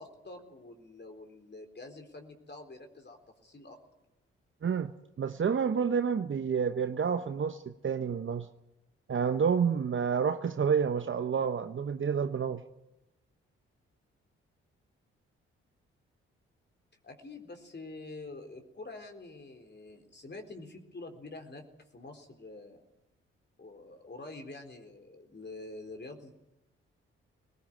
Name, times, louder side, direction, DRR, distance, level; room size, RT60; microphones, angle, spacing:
voice 1, 0.0-3.8 17.0-21.6 21.9-22.8 23.6-26.3, left 2 dB, 35° left, 4 dB, 4.1 m, -46 dB
voice 2, 4.6-4.9 5.2-8.5 9.1-12.6, right 6 dB, 45° right, 9 dB, 1.0 m, -29 dB
21.5 x 19.5 x 9.1 m, 0.93 s
hypercardioid pair, 40°, 29 cm